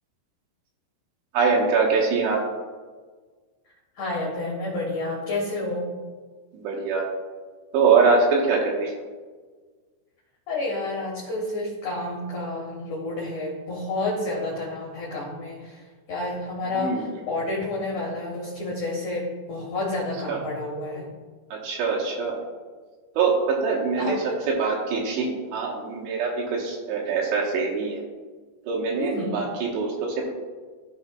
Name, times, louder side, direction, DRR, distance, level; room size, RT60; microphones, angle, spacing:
voice 1, 1.3-2.4 6.5-7.0 7.7-9.0 16.6-17.1 20.3-20.4 21.5-22.4 23.2-24.2 24.5-28.0 28.7-30.3, right 4 dB, 75° right, -2 dB, 3.0 m, -23 dB
voice 2, 4.0-5.9 10.5-15.8 16.1-21.1 24.0-24.4 29.0-29.4, left 2 dB, 80° left, -4 dB, 1.7 m, -30 dB
15.0 x 5.2 x 2.3 m, 1.4 s
omnidirectional pair, 5.5 m